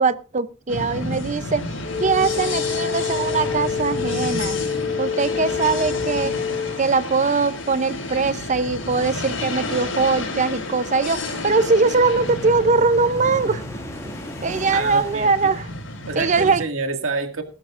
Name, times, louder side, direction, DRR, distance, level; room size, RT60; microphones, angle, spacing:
voice 1, 0.0-1.6 2.0-4.6 5.0-6.4 6.8-13.6 14.4-15.7 16.2-16.6, right 4 dB, 35° right, 14 dB, 0.6 m, -21 dB
sound 1, 0.7-16.6, left 2 dB, 75° left, 6.2 m, -31 dB
sound 2, 1.8-6.8, left 6 dB, 50° left, 3.6 m, -27 dB
sound 3, 10.6-15.6, left 1 dB, 15° left, 2.1 m, -39 dB
voice 2, 14.7-15.5 16.1-17.4, right 3 dB, 80° right, 5 dB, 2.1 m, -28 dB
19.0 x 12.5 x 2.5 m, 0.32 s
head